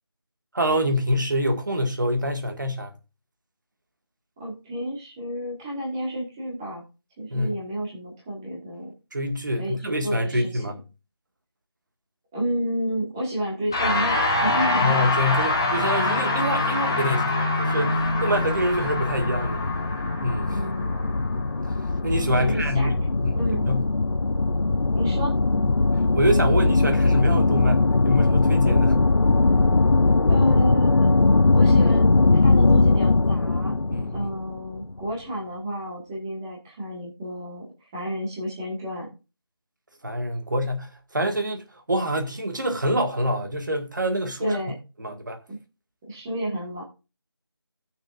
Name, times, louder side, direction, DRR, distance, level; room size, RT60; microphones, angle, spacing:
voice 1, 0.5-2.9 7.3-7.6 9.1-10.8 14.8-19.6 20.2-20.6 22.0-23.4 23.7-23.9 26.1-29.0 33.9-34.3 40.0-44.6 45.0-45.4, equal, 50° right, 2.0 m, -26 dB
voice 2, 4.4-6.8 7.2-8.9 9.6-10.6 12.3-15.0 16.0-16.2 20.5-20.9 22.3-22.9 23.3-23.6 24.9-25.3 30.3-31.1 31.5-32.1 32.4-33.7 34.1-37.6 37.9-39.1 44.4-44.7 45.5-45.6 46.0-46.8, equal, 10° right, 1.5 m, -30 dB
sound 1, 13.7-23.2, left 2 dB, 10° left, 0.8 m, -25 dB
sound 2, 18.0-35.0, left 3 dB, 75° left, 0.7 m, -20 dB
18.0 x 6.5 x 2.6 m
figure-of-eight pair, 175°, 13 cm